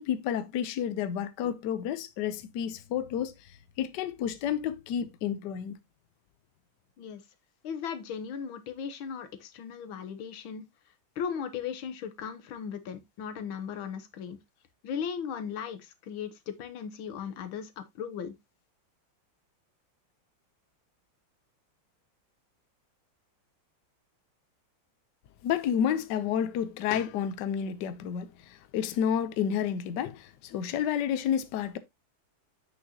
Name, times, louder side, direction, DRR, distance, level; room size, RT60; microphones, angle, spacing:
voice 1, 0.0-3.3 3.8-5.7 25.4-28.3 28.7-31.8, left 9 dB, 70° left, 1.2 m, -30 dB
voice 2, 7.6-10.6 11.2-14.4 14.8-18.3, left 7 dB, 85° left, 1.8 m, -37 dB
7.6 x 6.3 x 2.8 m
omnidirectional pair, 2.2 m